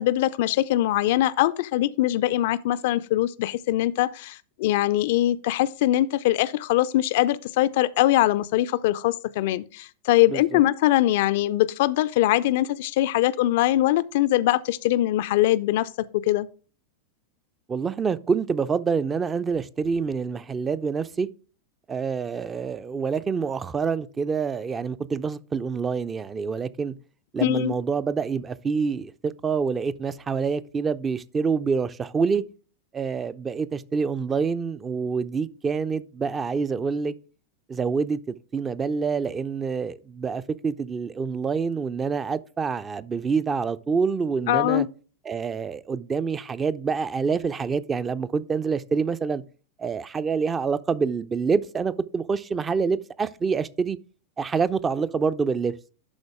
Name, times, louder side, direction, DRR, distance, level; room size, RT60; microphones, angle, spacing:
voice 1, 0.0-16.5 27.4-27.7 44.5-44.9, left 15 dB, 50° left, 0.3 m, -22 dB
voice 2, 10.3-10.6 17.7-21.3 21.9-26.9 27.3-32.4 32.9-37.1 37.7-44.9 45.3-49.4 49.8-54.0 54.4-55.7, right 5 dB, 20° right, 0.4 m, -26 dB
11.5 x 4.0 x 3.5 m
figure-of-eight pair, 90°, 0 cm